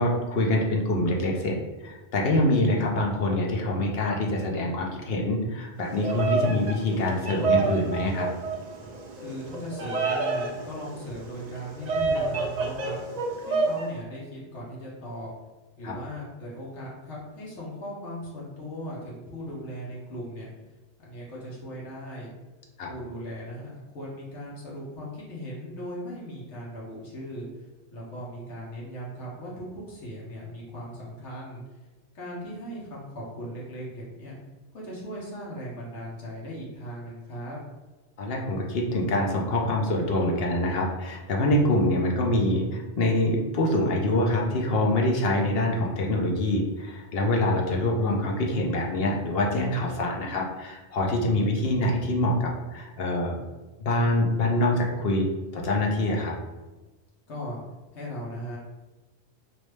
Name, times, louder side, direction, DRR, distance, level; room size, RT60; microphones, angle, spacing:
voice 1, 0.0-8.3 15.8-15.9 22.8-22.9 38.2-53.4 53.8-55.3 55.5-56.3, left 1 dB, 65° left, 0 dB, 0.8 m, -25 dB
Bird vocalization bird call bird song, 5.8-13.9, right 4 dB, 60° right, 0.4 m, -29 dB
voice 2, 9.2-13.0 13.4-15.3 15.8-20.5 21.0-22.3 22.9-27.5 27.9-31.6 32.1-34.3 34.7-37.6 57.3-57.6 57.9-58.6, equal, 85° left, -6 dB, 1.2 m, -38 dB
3.1 x 2.6 x 3.2 m, 1.2 s
omnidirectional pair, 1.2 m